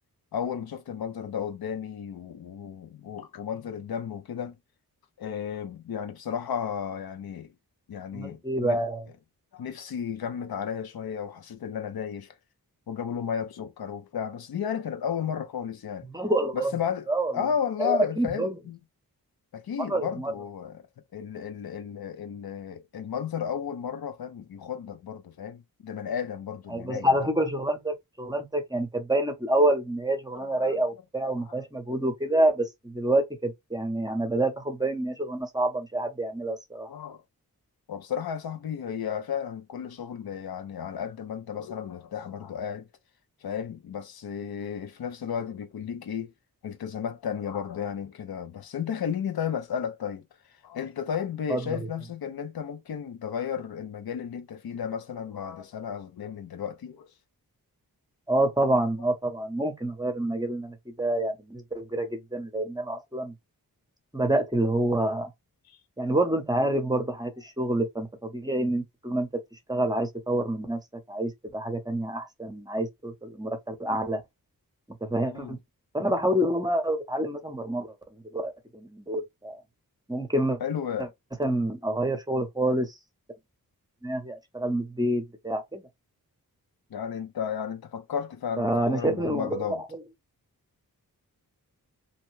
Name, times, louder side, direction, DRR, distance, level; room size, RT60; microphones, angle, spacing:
voice 1, 0.3-4.6 5.2-7.5 7.9-8.8 9.5-12.3 12.9-16.1 16.5-17.1 17.3-18.8 19.5-20.8 21.1-27.2 30.3-30.8 31.5-31.6 36.9-37.2 37.9-42.9 43.4-46.3 46.6-50.2 50.6-57.1 59.0-59.1 75.3-75.6 80.6-81.1 86.9-89.8, left 8 dB, 80° left, 0.6 m, -33 dB
voice 2, 8.1-9.0 16.1-16.7 17.1-17.3 17.8-18.6 19.9-20.3 26.7-36.9 51.5-51.6 58.3-63.3 64.1-65.3 66.0-69.3 69.7-70.8 71.1-74.2 75.0-75.6 75.9-77.9 78.1-79.6 80.1-80.6 81.4-82.9 84.0-85.8 88.6-89.8, right 1 dB, 10° right, 0.7 m, -27 dB
2.8 x 2.2 x 3.1 m
wide cardioid pair, 100°, 36 cm